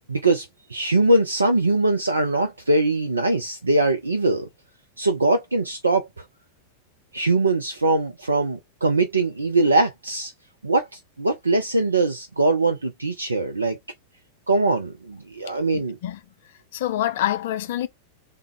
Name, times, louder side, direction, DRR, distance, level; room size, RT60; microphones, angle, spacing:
voice 1, 0.1-4.5 5.0-6.2 7.1-10.3 10.6-10.9 11.2-13.8 14.5-16.0, right 2 dB, 80° right, 0.4 m, -22 dB
voice 2, 15.7-16.2 16.7-17.9, left 13 dB, 55° left, 0.4 m, -26 dB
3.3 x 2.1 x 3.6 m
figure-of-eight pair, 90°, 0 cm